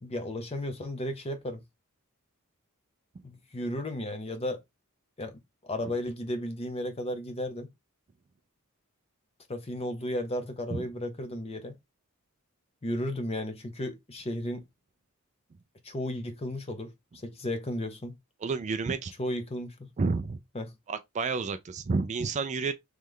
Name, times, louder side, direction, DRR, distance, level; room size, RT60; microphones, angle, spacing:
voice 1, 0.0-1.6 3.2-4.6 5.2-7.7 9.5-11.8 12.8-14.6 15.8-18.2 19.2-19.9 20.5-20.7, left 1 dB, 25° left, 0.8 m, -34 dB
voice 2, 18.4-19.1 20.0-20.4 20.9-22.7, right 4 dB, 30° right, 0.3 m, -30 dB
3.2 x 3.2 x 3.6 m
head